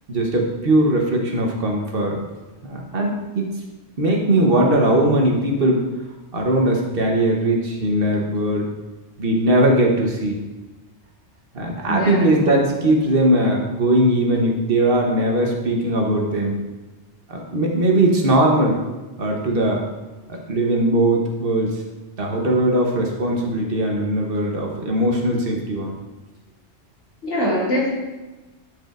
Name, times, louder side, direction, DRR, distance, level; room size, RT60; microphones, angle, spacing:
voice 1, 0.1-2.2 2.6-3.4 4.0-5.8 6.3-8.7 9.2-10.4 11.5-16.6 17.3-18.8 19.2-19.8 20.3-21.8 22.2-25.9, right 1 dB, 55° right, 0 dB, 1.2 m, -19 dB
voice 2, 11.8-12.4 27.2-27.9, equal, 85° left, -7 dB, 2.5 m, -23 dB
10.5 x 4.8 x 2.5 m, 1.1 s
omnidirectional pair, 1.2 m